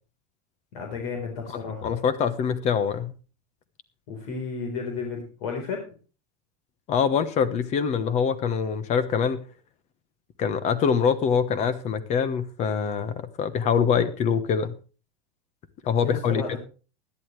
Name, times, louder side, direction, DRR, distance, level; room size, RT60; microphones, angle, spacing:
voice 1, 0.7-1.9 4.1-5.9 16.0-16.6, left 5 dB, 65° left, 2 dB, 4.1 m, -33 dB
voice 2, 1.8-3.1 6.9-9.4 10.4-14.8 15.8-16.6, left 6 dB, 35° left, 14 dB, 1.2 m, -24 dB
17.0 x 11.0 x 3.2 m, 0.36 s
supercardioid pair, 145°, 21 cm